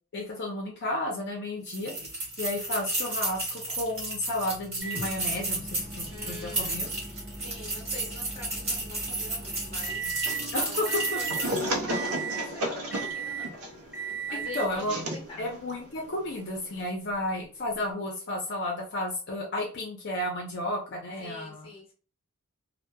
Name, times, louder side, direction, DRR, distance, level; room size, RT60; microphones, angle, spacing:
voice 1, 0.1-2.1 2.4-6.9 10.5-11.2 14.3-15.0 15.4-21.7, left 1 dB, 50° left, -1 dB, 0.6 m, -32 dB
sound 1, 1.7-11.7, right 2 dB, 30° right, 1.2 m, -33 dB
Microwave oven, 4.8-10.5 10.9-11.5 11.9-12.5 12.9-13.5 13.9-14.8 15.7-15.8 17.8-17.9, right 6 dB, 5° right, 0.8 m, -37 dB
voice 2, 6.1-6.8 7.4-10.1 10.5-13.6 14.3-15.5 21.2-21.9, left 2 dB, 25° left, -1 dB, 0.8 m, -44 dB
sound 2, 10.2-16.9, right 1 dB, 90° right, 0.6 m, -35 dB
2.9 x 2.1 x 2.2 m, 0.38 s
head